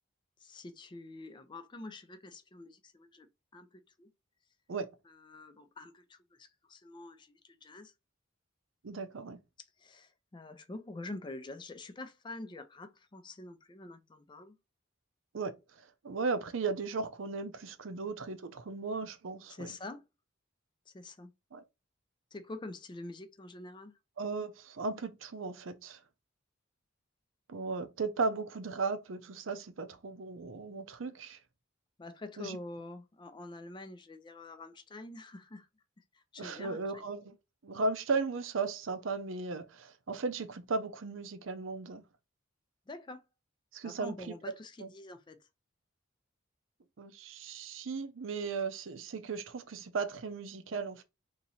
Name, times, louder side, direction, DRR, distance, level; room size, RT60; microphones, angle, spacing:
voice 1, 0.4-4.1 5.1-7.9 9.8-14.6 19.5-20.0 20.9-21.3 22.3-24.0 32.0-35.7 36.1-37.0 42.9-43.2 43.8-45.5, left 2 dB, 25° left, 0.4 m, -46 dB
voice 2, 8.8-9.4 15.3-15.5 16.0-19.7 21.5-21.6 24.2-26.0 27.5-31.4 32.4-32.6 36.4-37.4 37.6-42.0 43.7-44.1 44.8-44.9 47.0-51.0, right 4 dB, 75° right, 0.6 m, -36 dB
2.9 x 2.7 x 4.0 m
head